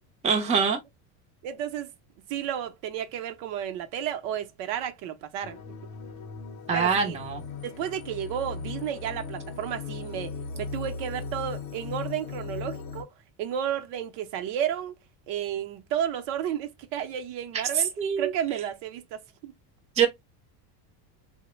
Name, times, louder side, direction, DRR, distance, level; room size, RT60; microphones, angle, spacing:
voice 1, 0.2-0.8 6.7-7.4 17.7-18.3 20.0-20.1, right 6 dB, 15° right, 0.5 m, -24 dB
voice 2, 1.4-1.9 2.3-5.6 6.7-7.2 7.6-13.1 13.4-15.0 15.3-17.9 18.2-19.5, right 9 dB, 65° right, 0.7 m, -32 dB
sound 1, 5.4-13.0, left 5 dB, 50° left, 0.6 m, -38 dB
3.1 x 2.1 x 2.9 m
cardioid pair, 140°, 46 cm